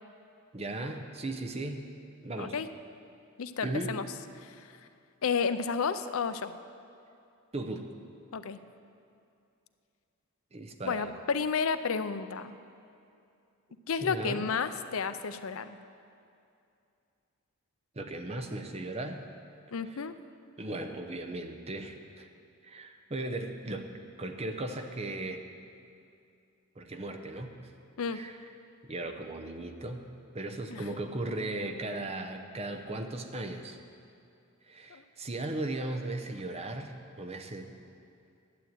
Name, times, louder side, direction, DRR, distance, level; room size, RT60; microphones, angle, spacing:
voice 1, 0.5-1.8 2.2-2.6 3.6-4.0 7.5-7.9 10.5-11.1 14.0-14.5 18.0-19.2 19.8-20.0 20.6-22.3 22.6-23.9 24.2-25.4 26.8-27.6 28.1-28.4 28.9-30.1 30.3-33.8 34.6-37.7, right 2 dB, 30° right, 5 dB, 0.8 m, -37 dB
voice 2, 3.4-4.1 4.4-4.7 5.2-6.5 8.3-8.6 10.8-12.5 13.9-15.8 19.7-20.1 28.0-28.2 30.7-30.8 34.9-35.0, left 5 dB, 75° left, 11 dB, 0.5 m, -31 dB
11.5 x 7.8 x 9.2 m, 2.6 s
head